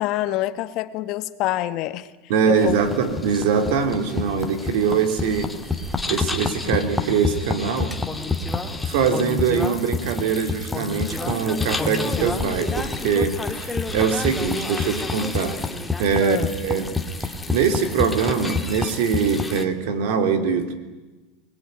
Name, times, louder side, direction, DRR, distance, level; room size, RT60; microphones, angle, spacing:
voice 1, 0.0-2.1 2.5-2.8 6.6-6.8 16.2-16.5, left 15 dB, 45° left, 13 dB, 1.1 m, -26 dB
voice 2, 2.3-5.5 6.1-8.0 8.9-15.6 16.0-16.9 17.2-20.7, right 6 dB, 70° right, 8 dB, 3.2 m, -23 dB
sound 1, 2.6-19.6, left 3 dB, 5° left, 1.6 m, -28 dB
25.0 x 20.0 x 9.4 m, 1.2 s
supercardioid pair, 150°, 0 cm